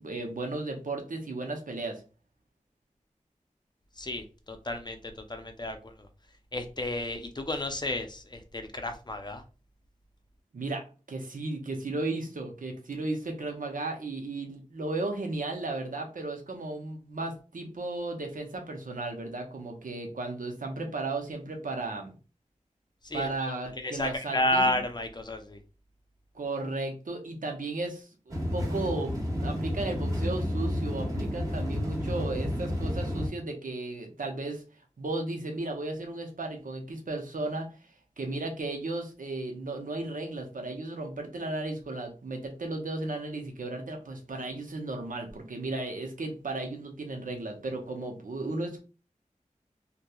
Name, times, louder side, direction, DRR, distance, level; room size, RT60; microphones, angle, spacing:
voice 1, 0.0-2.0 10.5-10.8 11.1-22.1 23.1-24.7 26.3-34.6 35.0-37.7 38.2-48.8, right 2 dB, 90° right, 0.6 m, -35 dB
voice 2, 4.0-6.1 6.5-9.4 23.0-23.5 23.7-25.6, left 1 dB, 35° left, 0.5 m, -32 dB
sound 1, 28.3-33.3, equal, 25° right, 1.3 m, -31 dB
2.7 x 2.2 x 2.3 m
wide cardioid pair, 50°, 13 cm